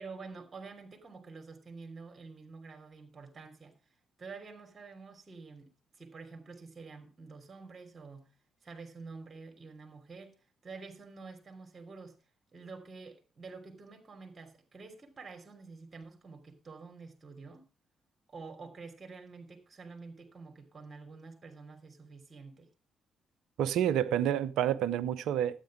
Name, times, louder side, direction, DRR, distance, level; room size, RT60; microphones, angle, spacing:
voice 1, 0.0-3.8 4.2-8.3 8.6-10.3 10.6-12.2 12.5-17.7 18.3-22.7, right 4 dB, 30° right, 3.2 m, -48 dB
voice 2, 23.6-25.6, right 10 dB, 60° right, 0.7 m, -29 dB
13.0 x 8.8 x 5.0 m
figure-of-eight pair, 40°, 0 cm